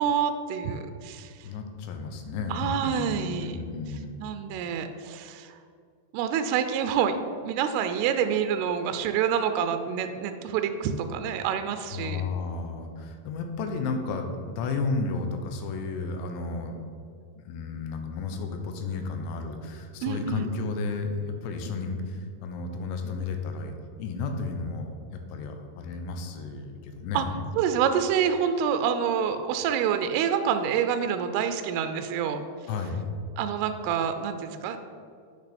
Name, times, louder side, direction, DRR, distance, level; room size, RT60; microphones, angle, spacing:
voice 1, 0.0-1.5 2.5-3.6 4.2-5.6 6.1-7.1 7.4-12.2 20.0-20.5 27.1-27.2 27.6-32.4 33.4-34.8, right 8 dB, 85° right, 8 dB, 2.4 m, -27 dB
voice 2, 1.4-4.1 11.9-16.8 17.4-27.4 32.7-33.1, left 4 dB, 90° left, 5 dB, 3.0 m, -33 dB
8.8 x 6.4 x 4.2 m, 2.3 s
omnidirectional pair, 4.9 m